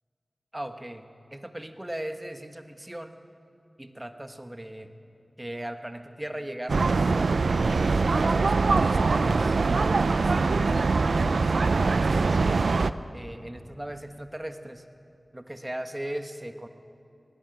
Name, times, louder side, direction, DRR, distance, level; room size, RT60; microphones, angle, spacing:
voice 1, 0.5-1.1 1.3-3.2 3.8-4.9 5.4-6.9 7.5-9.6 10.1-11.1 11.9-12.6 13.1-14.8 15.3-16.7, right 1 dB, 20° right, 7 dB, 1.4 m, -38 dB
sound 1, 6.7-12.9, right 4 dB, 85° right, 0.4 m, -23 dB
19.0 x 18.5 x 7.7 m, 2.6 s
cardioid pair, 40°, 0 cm